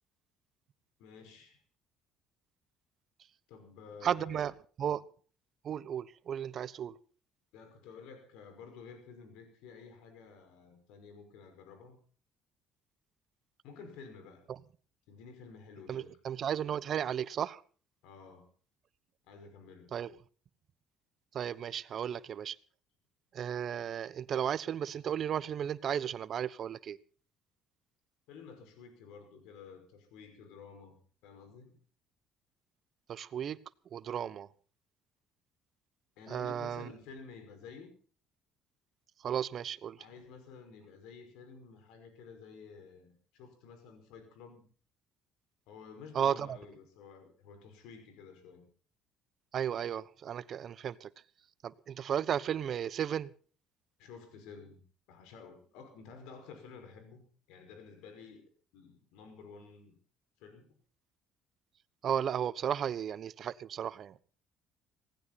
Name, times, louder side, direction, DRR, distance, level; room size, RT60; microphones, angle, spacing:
voice 1, 1.0-1.6 3.5-4.5 7.5-12.0 13.6-14.5 15.1-16.1 18.0-18.5 19.3-19.9 28.3-31.8 36.2-37.9 40.0-44.6 45.7-48.7 54.0-58.4 58.7-60.0 60.4-60.7, left 5 dB, 80° left, 5.5 m, -52 dB
voice 2, 4.0-4.5 4.8-5.0 5.6-7.0 15.9-17.6 19.9-20.1 21.3-22.6 23.3-27.0 33.1-33.6 33.9-34.5 36.3-36.9 39.2-40.0 46.1-46.6 49.5-51.1 51.6-53.3 62.0-64.2, right 9 dB, 55° right, 1.1 m, -34 dB
18.5 x 16.5 x 4.2 m
supercardioid pair, 85°, 0 cm